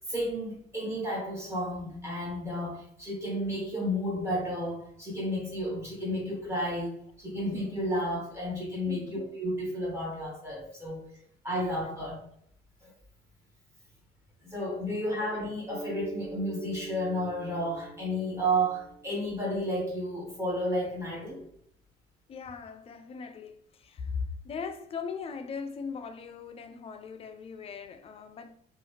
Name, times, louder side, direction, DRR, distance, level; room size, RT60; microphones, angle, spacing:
voice 1, 0.1-11.0 11.4-12.2 12.8-12.9 14.5-21.4, equal, 15° right, 1.4 m, -32 dB
Mallet percussion, 15.6-20.1, right 3 dB, 80° right, 1.0 m, -44 dB
voice 2, 22.3-28.5, left 5 dB, 35° left, 0.4 m, -39 dB
2.7 x 2.4 x 2.8 m
cardioid pair, 110°, 17 cm